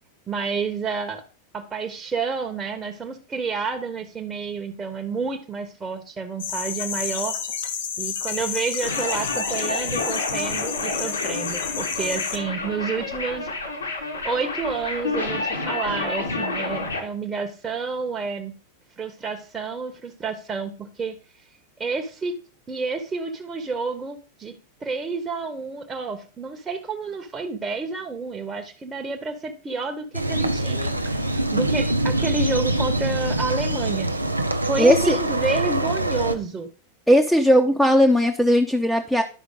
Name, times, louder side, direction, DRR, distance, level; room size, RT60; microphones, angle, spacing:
voice 1, 0.3-1.2 1.5-7.3 8.0-13.5 14.2-18.5 19.0-21.2 21.8-22.4 22.7-24.5 24.8-34.1 34.6-36.7, right 4 dB, 20° right, 3 dB, 1.2 m, -29 dB
sound 1, 6.4-12.4, left 7 dB, 60° left, 1.2 m, -30 dB
sound 2, 8.8-17.0, left 3 dB, 75° left, 2.5 m, -29 dB
sound 3, 30.1-36.4, right 1 dB, 85° right, 0.8 m, -24 dB
voice 2, 34.8-35.2 37.1-39.2, equal, ahead, 2 dB, 0.9 m, -17 dB
11.0 x 5.6 x 3.8 m, 0.37 s
figure-of-eight pair, 90°, 0 cm